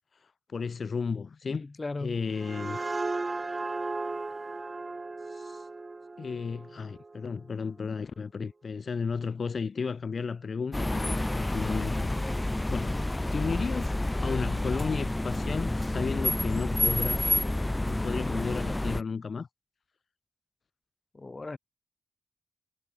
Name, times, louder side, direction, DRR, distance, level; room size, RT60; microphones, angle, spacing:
voice 1, 0.2-1.6 2.0-2.8 5.3-5.7 6.2-12.1 12.7-13.0 13.3-17.2 17.9-19.5, left 5 dB, 60° left, 1.3 m, -34 dB
voice 2, 1.5-2.2 21.1-21.6, left 3 dB, 35° left, 1.8 m, -37 dB
sound 1, 2.1-7.5, right 3 dB, 35° right, 1.3 m, -36 dB
sound 2, 10.7-19.0, left 1 dB, 15° left, 0.4 m, -29 dB
cardioid pair, 60°, 0 cm